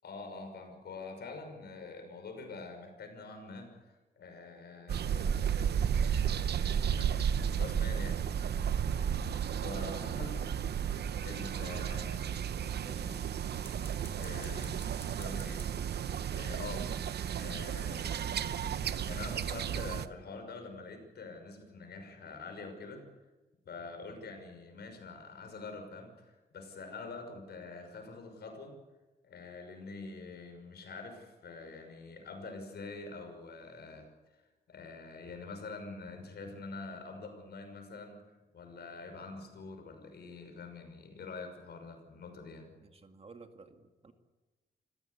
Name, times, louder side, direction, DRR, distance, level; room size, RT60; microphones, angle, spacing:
voice 1, 0.0-5.6 6.9-7.1 7.6-8.2 8.7-10.4 11.2-12.2 12.9-13.2 14.2-14.8 15.2-15.6 16.3-16.9 17.4-18.4 19.1-23.0 23.7-28.7 29.2-42.7, left 3 dB, 75° left, 5 dB, 6.0 m, -46 dB
sound 1, 4.9-20.1, right 8 dB, 80° right, 0.9 m, -33 dB
sound 2, 7.3-10.1 13.5-16.8, left 2 dB, 15° left, 2.6 m, -59 dB
voice 2, 9.1-10.6 12.8-13.3 42.8-44.1, right 3 dB, 35° right, 6 dB, 2.1 m, -54 dB
26.5 x 16.0 x 8.4 m, 1.2 s
wide cardioid pair, 120°, 17 cm